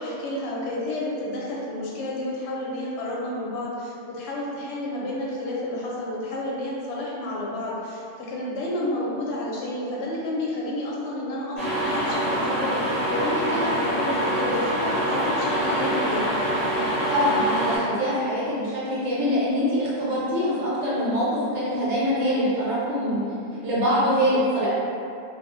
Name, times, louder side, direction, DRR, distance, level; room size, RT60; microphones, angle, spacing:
voice 1, 0.0-16.4, left 1 dB, 70° left, -5 dB, 0.8 m, -30 dB
sound 1, 11.6-17.8, right 1 dB, ahead, 0.8 m, -25 dB
voice 2, 17.1-21.3 21.5-23.2 23.6-24.7, equal, 65° right, -9 dB, 1.1 m, -24 dB
2.3 x 2.0 x 3.0 m, 2.5 s
omnidirectional pair, 1.3 m